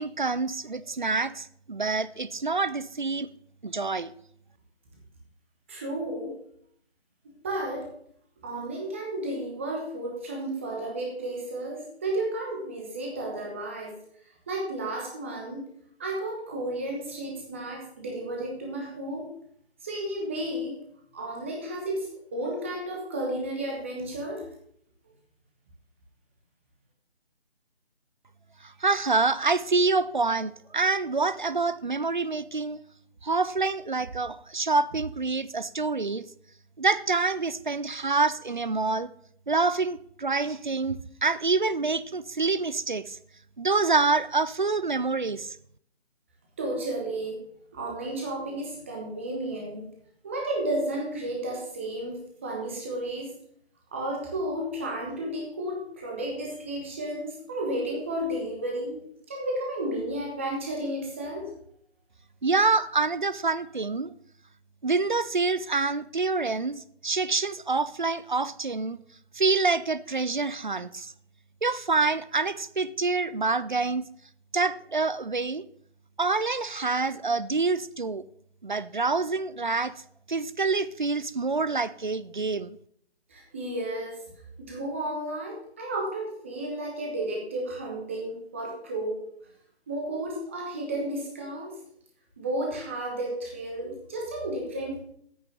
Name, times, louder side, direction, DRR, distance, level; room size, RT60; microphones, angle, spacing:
voice 1, 0.0-3.3 3.6-4.1 28.6-32.8 33.2-36.2 36.8-39.1 39.5-43.2 43.6-45.6 62.4-64.1 64.8-69.0 69.3-71.1 71.6-74.0 74.5-75.6 76.2-78.2 78.6-79.9 80.3-82.8, right 3 dB, 45° right, 16 dB, 0.4 m, -26 dB
voice 2, 5.7-6.4 7.4-7.9 8.4-14.0 14.5-15.7 16.0-19.3 19.8-20.8 21.1-24.5 46.6-47.4 47.7-49.9 50.2-53.3 53.9-59.0 59.3-61.5 83.3-84.2 84.6-89.2 89.9-91.7 92.4-95.0, right 1 dB, 10° right, -1 dB, 1.1 m, -32 dB
8.8 x 6.4 x 6.3 m, 0.67 s
figure-of-eight pair, 155°, 33 cm